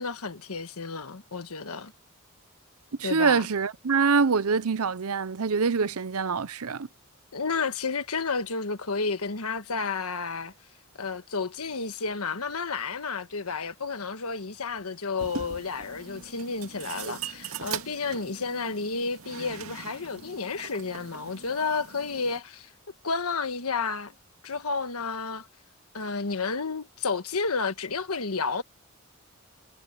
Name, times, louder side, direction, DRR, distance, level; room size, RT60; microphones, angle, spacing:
voice 1, 0.0-1.9 3.0-3.5 7.3-10.5 11.0-22.7 23.0-24.1 24.4-25.5 25.9-28.6, left 4 dB, 85° left, 1.4 m, -31 dB
voice 2, 3.0-6.9, right 5 dB, 90° right, 0.7 m, -25 dB
sound 1, 15.2-22.4, right 6 dB, 70° right, 2.2 m, -41 dB
head